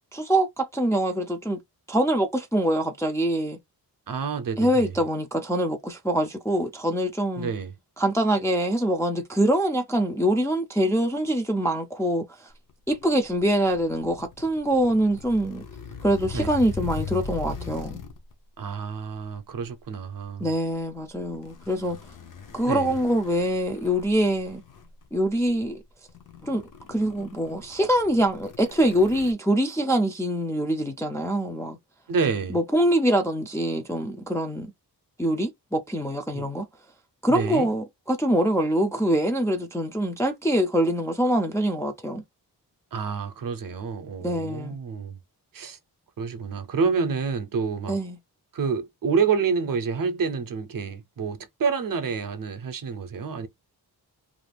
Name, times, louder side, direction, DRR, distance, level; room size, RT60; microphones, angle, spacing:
voice 1, 0.1-1.6 1.9-3.6 4.6-7.5 8.0-12.5 12.9-15.6 16.0-18.0 20.4-22.0 22.5-24.6 25.1-25.8 26.4-26.6 26.9-31.8 32.5-34.7 35.2-36.7 37.2-42.2 44.2-44.8 47.9-48.2, right 1 dB, 10° left, 0.3 m, -24 dB
voice 2, 4.1-4.9 7.4-7.7 16.3-16.5 18.6-20.5 22.6-22.9 32.1-32.6 36.3-36.5 37.3-37.7 42.9-45.2 45.5-45.8 46.2-48.0 48.5-53.5, right 5 dB, 55° right, 0.6 m, -28 dB
sound 1, 12.7-18.3 19.1-19.4 21.3-25.1 25.6-25.7 26.1-29.3, left 4 dB, 50° left, 0.6 m, -39 dB
2.5 x 2.3 x 3.2 m
wide cardioid pair, 150°, 40 cm